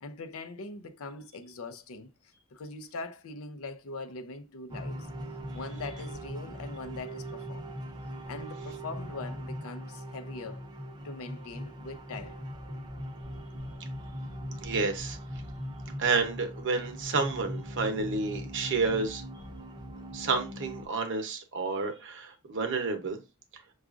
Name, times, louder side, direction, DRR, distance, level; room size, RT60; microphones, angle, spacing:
voice 1, 0.0-2.1 2.5-5.1 5.5-7.6 8.3-10.6 11.0-12.4, left 3 dB, 65° left, 0.5 m, -41 dB
sound 1, 4.7-20.8, equal, 20° right, 0.6 m, -40 dB
voice 2, 14.6-15.2 16.0-19.2 20.1-23.2, right 4 dB, 55° right, 0.8 m, -30 dB
5.9 x 2.4 x 2.4 m
head